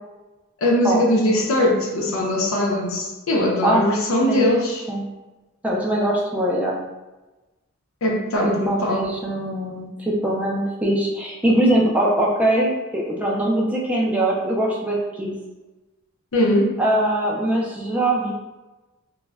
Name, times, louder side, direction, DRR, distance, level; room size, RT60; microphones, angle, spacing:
voice 1, 0.6-4.9 8.0-9.1 16.3-16.7, left 1 dB, 75° left, 0 dB, 0.6 m, -20 dB
voice 2, 5.6-6.8 8.4-15.3 16.8-18.3, right 1 dB, 5° right, -3 dB, 0.4 m, -22 dB
2.2 x 2.0 x 3.4 m, 1.1 s
head